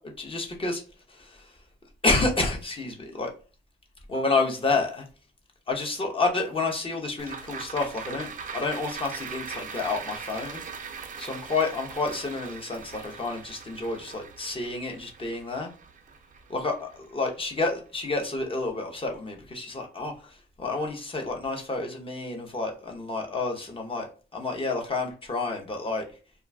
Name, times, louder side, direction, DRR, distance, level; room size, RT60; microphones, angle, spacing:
voice 1, 0.2-0.8 1.1-1.5 2.0-3.3 4.1-5.0 5.7-10.6 11.2-15.7 16.5-26.0, left 3 dB, 25° left, 1 dB, 0.8 m, -29 dB
sound 1, 7.2-17.7 18.1-18.2, right 6 dB, 40° right, 0.5 m, -41 dB
2.4 x 2.3 x 3.2 m, 0.36 s
cardioid pair, 90°, 20 cm